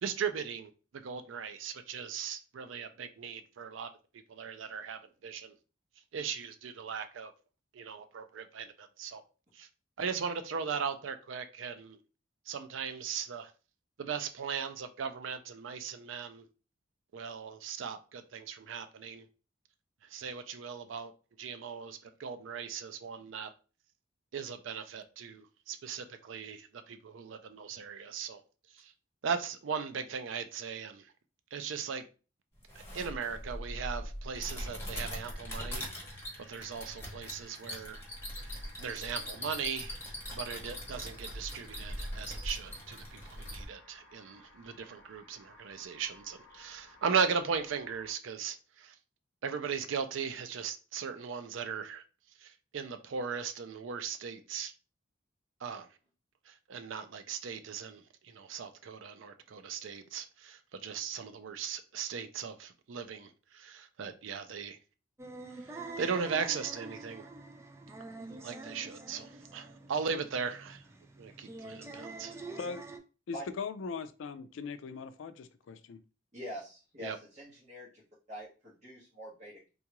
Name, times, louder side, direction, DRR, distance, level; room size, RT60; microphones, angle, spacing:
voice 1, 0.0-5.6 6.1-7.3 7.7-9.2 9.5-9.7 10.0-12.0 12.5-13.5 14.0-16.5 17.1-19.3 20.0-21.1 21.4-23.5 24.3-28.4 28.7-28.9 29.2-31.1 31.5-32.1 32.7-38.0 38.4-40.0 40.3-49.0 49.4-52.0 52.4-54.7 55.6-55.9 56.5-64.8 65.6-67.3 68.2-70.8 71.2-72.4 77.0-77.2, right 6 dB, 85° right, 0.4 m, -38 dB
sound 1, 32.6-43.6, equal, 15° left, 1.0 m, -41 dB
sound 2, 34.9-48.1, left 1 dB, 65° left, 0.8 m, -58 dB
sound 3, 65.2-73.0, right 2 dB, 15° right, 0.3 m, -46 dB
voice 2, 73.3-76.0, left 5 dB, 85° left, 0.4 m, -40 dB
voice 3, 76.3-78.0 78.3-79.7, equal, 35° right, 1.3 m, -45 dB
3.7 x 2.3 x 2.9 m
head